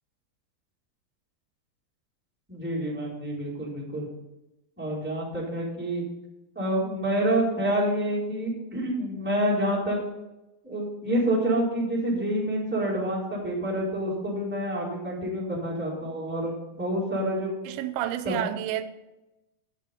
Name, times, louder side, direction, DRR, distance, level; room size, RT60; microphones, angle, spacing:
voice 1, 2.5-4.1 4.8-6.0 6.5-10.0 10.6-17.5 18.2-18.3, right 1 dB, 5° right, 3.9 m, -28 dB
voice 2, 17.7-18.8, right 12 dB, 90° right, 3.0 m, -30 dB
12.0 x 6.7 x 5.3 m
omnidirectional pair, 5.1 m